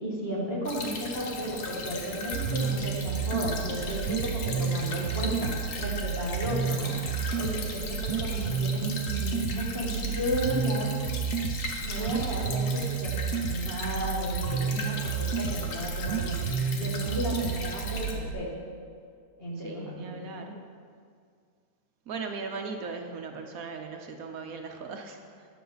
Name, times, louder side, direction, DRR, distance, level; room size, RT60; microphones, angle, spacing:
voice 1, 0.0-6.9 7.4-10.9 11.8-16.5 16.8-18.5 19.4-20.5, equal, 40° left, -4 dB, 2.4 m, -34 dB
Stream / Trickle dribble, 0.7-18.1, left 3 dB, 85° left, 1.7 m, -38 dB
sound 1, 2.3-18.3, right 6 dB, 90° right, 1.2 m, -31 dB
voice 2, 19.6-20.5 22.1-25.5, right 4 dB, 70° right, 4 dB, 1.2 m, -38 dB
12.0 x 9.4 x 4.0 m, 2.2 s
omnidirectional pair, 1.6 m